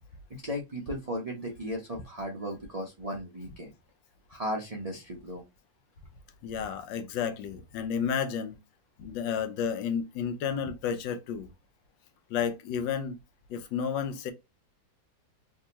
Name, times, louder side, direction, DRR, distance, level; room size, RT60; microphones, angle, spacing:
voice 1, 0.3-3.7 4.3-5.4, equal, 75° right, 0.3 m, -36 dB
voice 2, 6.4-8.6 9.0-11.5 12.3-13.2 13.5-14.3, left 7 dB, 90° left, 1.3 m, -31 dB
3.5 x 2.7 x 2.8 m
omnidirectional pair, 1.9 m